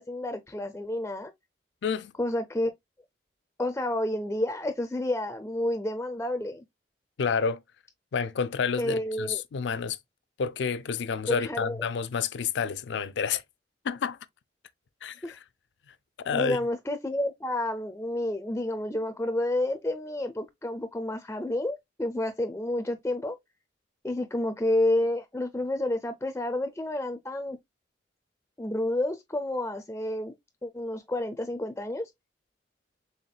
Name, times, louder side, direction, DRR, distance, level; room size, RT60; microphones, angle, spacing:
voice 1, 0.0-1.3 2.2-2.7 3.6-6.6 8.8-9.4 11.3-11.8 15.2-15.4 16.3-23.4 24.0-27.6 28.6-30.3 30.6-32.1, left 1 dB, 15° left, 0.4 m, -30 dB
voice 2, 1.8-2.1 7.2-7.6 8.1-10.0 10.4-13.4 13.8-14.2 15.0-15.4 16.2-16.6, left 6 dB, 75° left, 0.4 m, -29 dB
4.2 x 3.4 x 2.3 m
head